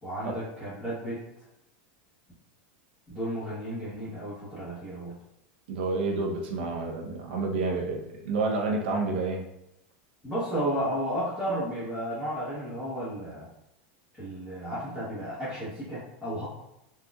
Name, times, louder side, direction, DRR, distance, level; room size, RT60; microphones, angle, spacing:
voice 1, 0.0-1.2 3.1-5.1 10.2-13.5 14.2-16.4, equal, 5° left, -13 dB, 1.0 m, -33 dB
voice 2, 5.7-9.5, right 3 dB, 70° right, 1 dB, 0.7 m, -29 dB
4.2 x 2.4 x 2.3 m, 0.87 s
supercardioid pair, 175°, 6 cm